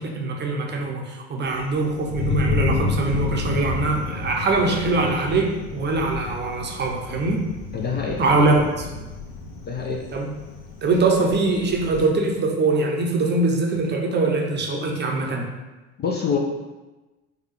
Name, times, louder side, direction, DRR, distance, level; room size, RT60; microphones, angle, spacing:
voice 1, 0.0-7.4 8.2-8.8 10.1-10.3 10.8-15.4, right 3 dB, 25° right, 0 dB, 0.7 m, -22 dB
Thunder, 1.5-12.1, left 4 dB, 55° left, 1.2 m, -30 dB
voice 2, 7.7-8.5 9.7-10.0 16.0-16.4, left 6 dB, 25° left, 0 dB, 0.4 m, -26 dB
4.6 x 2.3 x 3.3 m, 1.1 s
hypercardioid pair, 70°, 39 cm